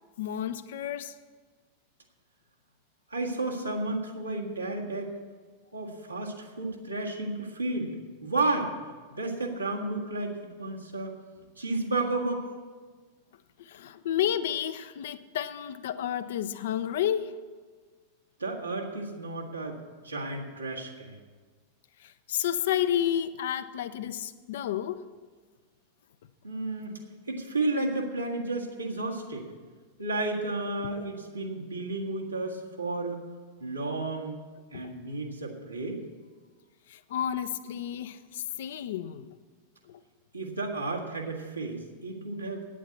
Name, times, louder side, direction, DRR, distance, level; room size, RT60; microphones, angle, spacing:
voice 1, 0.2-1.2 13.6-17.4 22.0-25.1 34.7-34.9 36.9-39.4 39.9-40.0, left 10 dB, 60° left, 0.5 m, -31 dB
voice 2, 3.1-5.1 5.7-8.7 9.1-11.2 11.6-12.5 18.4-21.2 26.4-27.0 27.3-29.5 30.0-33.2 33.6-34.4 34.7-36.0 40.3-42.6, right 2 dB, 85° right, 1.7 m, -32 dB
9.2 x 8.5 x 8.4 m
figure-of-eight pair, 90°, 0 cm